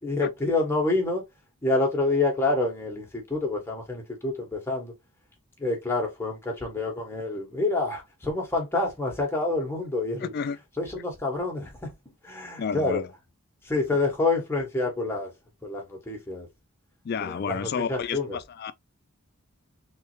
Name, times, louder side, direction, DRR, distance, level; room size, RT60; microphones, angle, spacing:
voice 1, 0.0-1.2 1.6-4.9 5.6-10.3 10.8-13.0 13.6-15.3 15.6-16.5 17.2-18.4, left 2 dB, 10° left, 1.1 m, -27 dB
voice 2, 10.2-10.6 12.6-13.1 17.0-18.7, left 6 dB, 45° left, 0.3 m, -31 dB
3.4 x 3.1 x 3.0 m
head